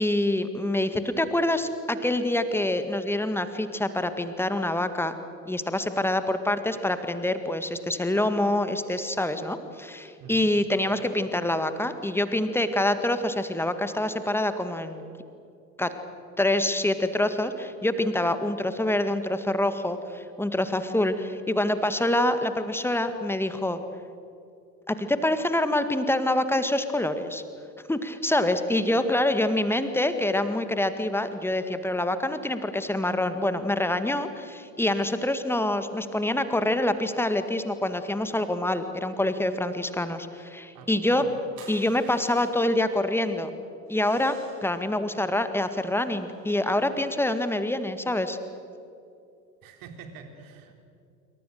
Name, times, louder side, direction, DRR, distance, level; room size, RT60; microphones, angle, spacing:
voice 1, 0.0-5.2 5.5-15.0 15.8-15.9 16.4-23.8 24.9-27.4 27.9-41.3 41.7-43.5 43.9-48.4, left 1 dB, 5° left, 10 dB, 1.9 m, -26 dB
voice 2, 10.2-10.5 40.7-41.3 49.6-50.8, right 6 dB, 45° right, 5 dB, 3.8 m, -45 dB
sound 1, 41.6-42.8 43.9-44.8 45.7-47.4, right 4 dB, 60° right, 7.3 m, -52 dB
27.5 x 25.0 x 6.7 m, 2.6 s
figure-of-eight pair, 70°, 48 cm